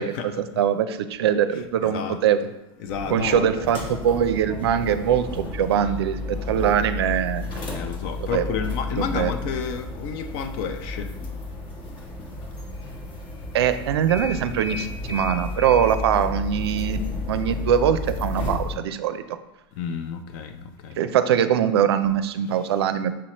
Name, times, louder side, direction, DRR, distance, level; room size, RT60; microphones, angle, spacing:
voice 1, 0.0-2.4 3.1-7.6 8.2-8.5 8.9-9.3 13.5-17.0 17.3-19.4 21.0-23.1, right 9 dB, 75° right, 11 dB, 0.4 m, -22 dB
voice 2, 1.8-2.2 2.8-3.7 7.7-11.1 19.8-21.0, left 6 dB, 55° left, 8 dB, 0.6 m, -31 dB
sound 1, 2.9-18.8, left 3 dB, 35° left, 1.1 m, -32 dB
6.0 x 3.0 x 2.9 m, 0.97 s
hypercardioid pair, 105°, 13 cm